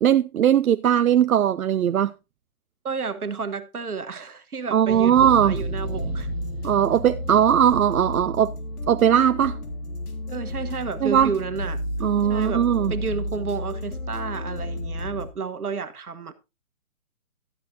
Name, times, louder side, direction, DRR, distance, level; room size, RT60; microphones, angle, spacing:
voice 1, 0.0-2.1 4.7-5.6 6.6-8.5 8.9-9.6 11.0-11.3 12.0-12.9, right 9 dB, 70° right, 0.6 m, -19 dB
voice 2, 2.8-6.3 10.3-11.8 12.3-12.6 12.9-16.3, right 5 dB, 85° right, 1.4 m, -31 dB
sound 1, 4.9-9.1, right 8 dB, 45° right, 0.9 m, -39 dB
sound 2, 5.2-15.3, left 1 dB, 85° left, 3.1 m, -31 dB
12.5 x 11.0 x 2.7 m
hypercardioid pair, 145°, 44 cm